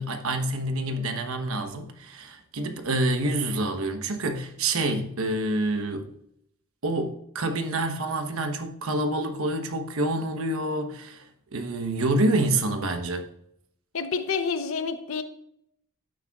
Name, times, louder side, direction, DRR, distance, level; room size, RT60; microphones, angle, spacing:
voice 1, 0.0-6.1 6.8-11.2 11.5-13.2, right 1 dB, 80° right, 1.0 m, -27 dB
voice 2, 13.9-15.2, left 5 dB, 70° left, 0.7 m, -28 dB
12.0 x 8.9 x 2.4 m
head